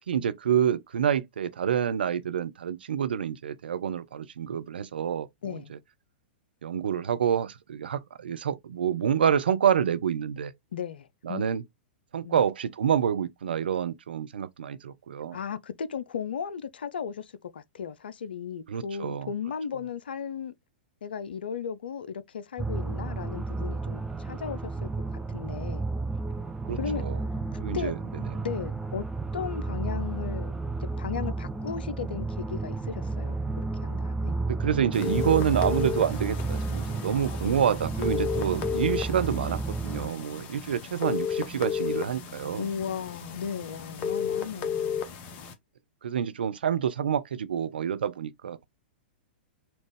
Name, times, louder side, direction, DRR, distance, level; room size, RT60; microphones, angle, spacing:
voice 1, 0.0-5.8 6.6-10.5 11.2-11.6 12.1-15.4 18.7-19.3 26.7-27.2 27.6-28.0 34.5-42.7 46.0-48.6, right 8 dB, 70° right, 0.5 m, -28 dB
voice 2, 10.7-11.4 12.2-12.4 15.3-20.5 21.0-25.8 26.8-27.0 27.7-27.9 28.4-29.0 29.3-34.3 42.6-45.0, left 7 dB, 70° left, 0.5 m, -36 dB
sound 1, 22.6-40.1, right 3 dB, 10° right, 0.4 m, -32 dB
sound 2, 34.9-45.5, left 7 dB, 35° left, 0.8 m, -33 dB
4.3 x 2.4 x 3.2 m
figure-of-eight pair, 105°, 6 cm